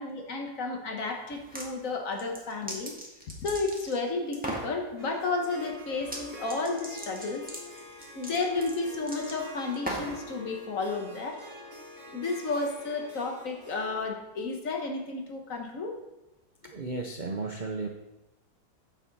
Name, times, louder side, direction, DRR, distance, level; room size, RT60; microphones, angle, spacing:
voice 1, 0.0-2.9 3.4-7.5 8.1-11.4 12.1-16.0, left 3 dB, 50° left, 2 dB, 1.6 m, -32 dB
sound 1, 1.3-1.7 2.1-4.0 4.3-4.7 6.0-6.2 6.5-10.2, right 1 dB, 5° right, 1.5 m, -38 dB
Harp, 5.0-14.1, left 2 dB, 45° right, 2.1 m, -46 dB
voice 2, 16.7-17.9, right 3 dB, 70° right, 2 dB, 0.4 m, -34 dB
9.3 x 7.3 x 4.1 m, 0.99 s
omnidirectional pair, 1.9 m